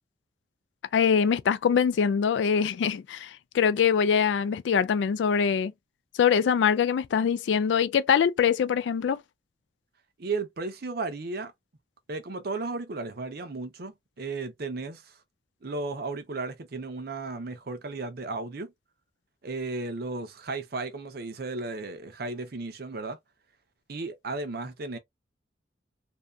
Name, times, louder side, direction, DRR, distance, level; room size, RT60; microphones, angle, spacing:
voice 1, 0.9-5.7 6.2-9.2, left 7 dB, 80° left, 0.3 m, -23 dB
voice 2, 10.2-11.5 12.1-15.2 15.6-18.7 19.4-23.2 23.9-25.0, right 3 dB, 55° right, 0.6 m, -34 dB
2.7 x 2.3 x 2.2 m
head